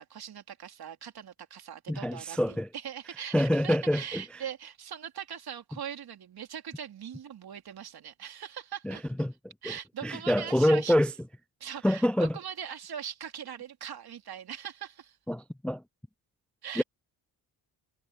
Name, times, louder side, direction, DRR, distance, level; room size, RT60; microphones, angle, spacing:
voice 1, 0.0-9.1 9.6-10.9 11.6-15.2 16.6-16.8, right 8 dB, 65° right, 3.4 m, -41 dB
voice 2, 1.9-2.7 3.3-4.2 8.8-9.3 9.7-9.8 10.0-11.1 11.8-12.4 15.3-15.8 16.8-16.9, equal, 5° left, 0.3 m, -26 dB
cardioid pair, 65°, 40 cm